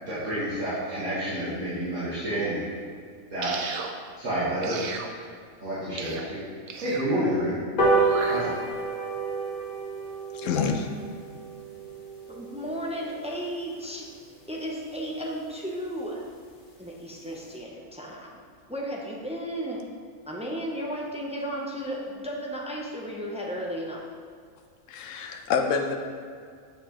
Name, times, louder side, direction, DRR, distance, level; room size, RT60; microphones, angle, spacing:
voice 1, 0.0-2.6 3.3-3.5 4.2-4.8 5.2-5.3 5.6-6.4 6.8-7.6 8.3-8.5, right 1 dB, 65° right, -12 dB, 2.0 m, -29 dB
sound 1, 3.4-3.9 4.6-5.1 6.0-6.2 6.7-7.1 8.0-8.4, right 5 dB, 85° right, 1.1 m, -35 dB
sound 2, 7.8-14.5 14.9-15.0 15.4-15.5 15.7-15.8 16.1-16.2 16.5-16.8 17.2-17.3, right 3 dB, 40° left, 1.2 m, -30 dB
voice 2, 10.3-10.9 24.9-26.0, left 5 dB, 70° left, 5 dB, 1.0 m, -27 dB
voice 3, 12.3-14.1 14.5-16.2 16.8-18.4 18.7-19.8 20.3-24.0, equal, 10° right, -3 dB, 0.5 m, -34 dB
6.8 x 6.5 x 3.0 m, 2.1 s
omnidirectional pair, 1.4 m